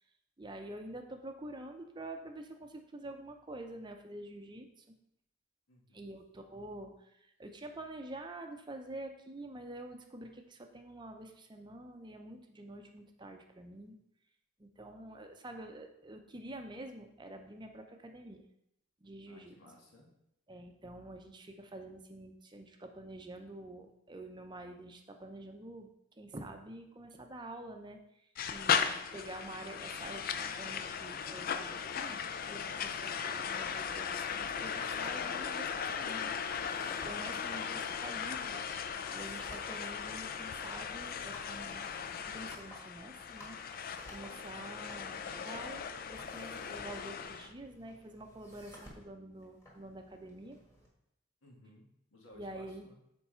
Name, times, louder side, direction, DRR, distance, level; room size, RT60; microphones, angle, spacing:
voice 1, 0.4-4.8 5.9-14.0 14.6-18.4 19.0-19.5 20.5-25.9 26.2-28.0 28.5-36.3 36.9-38.6 39.1-41.9 42.3-43.6 44.1-50.6 52.3-52.8, right 1 dB, 20° right, 5 dB, 0.6 m, -47 dB
voice 2, 5.7-6.1 15.4-15.5 19.3-20.1 51.4-53.0, left 1 dB, 90° left, -2 dB, 1.7 m, -60 dB
sound 1, 28.4-47.5, left 7 dB, 45° left, 0.4 m, -37 dB
sound 2, 33.9-50.9, left 1 dB, 15° left, 1.7 m, -57 dB
7.0 x 4.6 x 4.3 m, 0.79 s
head